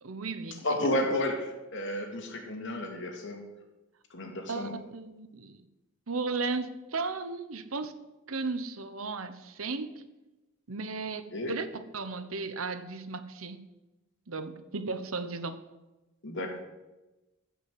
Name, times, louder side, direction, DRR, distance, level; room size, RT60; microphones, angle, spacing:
voice 1, 0.0-0.6 4.5-5.6 6.1-7.9 8.3-10.0 10.7-13.7 14.3-15.6, right 3 dB, 85° right, 11 dB, 1.1 m, -35 dB
voice 2, 0.6-3.4 4.1-4.7 11.3-11.5 16.2-16.6, left 1 dB, 65° left, 3 dB, 2.5 m, -32 dB
15.5 x 6.0 x 7.9 m, 1.1 s
head